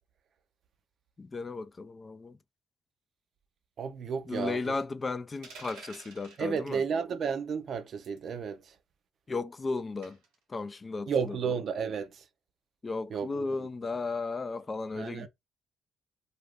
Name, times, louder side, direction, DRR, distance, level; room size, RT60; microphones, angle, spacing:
voice 1, 1.2-2.4 4.3-6.8 9.3-10.2 10.5-11.4 12.8-15.3, left 3 dB, 35° left, 0.3 m, -35 dB
voice 2, 3.8-4.7 6.4-8.7 11.1-12.2 13.1-13.4 15.0-15.3, right 6 dB, 65° right, 0.5 m, -32 dB
sound 1, 5.4-6.4 8.0-8.3 10.0-10.3, right 4 dB, 90° right, 0.9 m, -48 dB
2.4 x 2.2 x 3.3 m
supercardioid pair, 60°, 0 cm